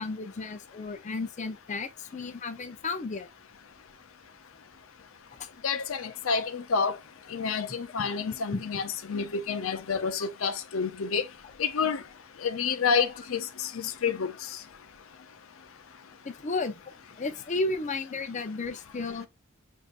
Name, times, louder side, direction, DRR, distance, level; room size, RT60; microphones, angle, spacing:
voice 1, 0.0-3.3 5.4-5.5 8.5-8.6 16.2-19.3, left 3 dB, 35° left, 0.6 m, -33 dB
voice 2, 5.6-7.0 7.3-11.2 11.6-12.0 12.4-14.6, left 5 dB, 85° left, 0.6 m, -29 dB
6.5 x 2.6 x 2.4 m
head